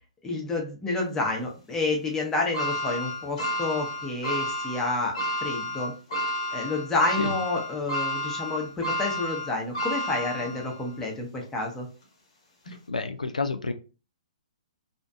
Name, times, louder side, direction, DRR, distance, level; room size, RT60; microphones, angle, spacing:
voice 1, 0.2-5.1 5.4-5.9 6.5-11.9, left 2 dB, 15° left, -1 dB, 0.8 m, -29 dB
sound 1, 2.5-10.9 11.4-11.5 12.7-12.8, equal, 50° left, 1.2 m, -31 dB
voice 2, 12.9-13.7, left 3 dB, 90° left, 7 dB, 0.3 m, -29 dB
2.7 x 2.3 x 2.2 m, 0.34 s
figure-of-eight pair, 125°, 4 cm